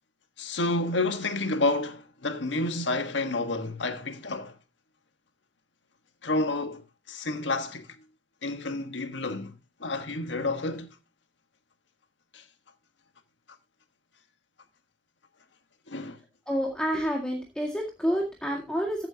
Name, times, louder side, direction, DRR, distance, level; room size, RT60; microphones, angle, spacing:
voice 1, 0.4-4.5 6.2-7.9 8.4-9.5 9.8-10.9 12.3-12.4 15.9-16.2, left 2 dB, 90° left, 1.5 m, -29 dB
voice 2, 16.5-19.1, equal, 5° left, 2.0 m, -29 dB
14.5 x 7.8 x 2.8 m
head